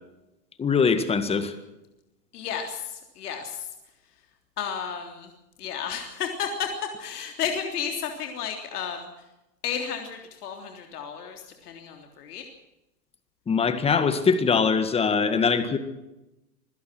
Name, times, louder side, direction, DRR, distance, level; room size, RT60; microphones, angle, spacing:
voice 1, 0.6-1.5 13.5-15.8, left 5 dB, 10° left, 10 dB, 1.8 m, -22 dB
voice 2, 2.3-3.7 4.6-5.3 5.6-6.7 7.0-9.1 9.6-12.4, left 7 dB, 70° left, 4 dB, 3.5 m, -32 dB
26.0 x 17.0 x 6.1 m, 0.95 s
hypercardioid pair, 140°, 48 cm